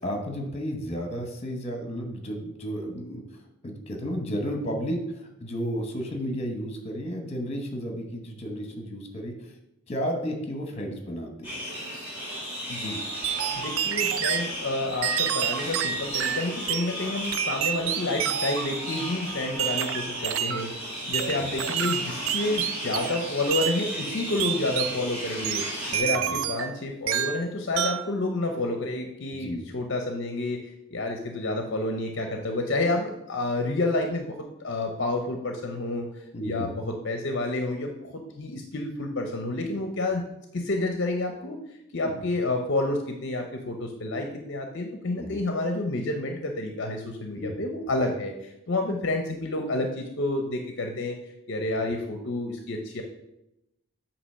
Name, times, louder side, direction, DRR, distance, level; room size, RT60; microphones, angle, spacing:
voice 1, 0.0-3.2 3.6-9.5 9.9-11.5 21.4-21.5 26.2-26.4 29.3-29.6 36.3-36.7 42.0-42.1 45.2-45.4 47.3-47.5, equal, 30° left, 3 dB, 1.0 m, -32 dB
sound 1, 11.4-26.0, equal, 10° right, 1.6 m, -35 dB
sound 2, 12.6-20.6, right 1 dB, 90° right, 1.7 m, -45 dB
voice 2, 12.7-13.0 13.6-20.8 21.1-36.1 36.4-40.3 40.5-41.6 41.9-51.2 51.5-53.0, left 2 dB, 50° left, 4 dB, 0.6 m, -29 dB
sound 3, 13.2-14.5 15.0-16.9 17.3-18.7 19.6-20.7 21.1-23.2 23.5-23.8 24.4-25.0 25.4-26.8 27.1-27.4 27.8-28.1, right 10 dB, 60° right, 0.3 m, -28 dB
8.2 x 2.9 x 5.5 m, 0.86 s
head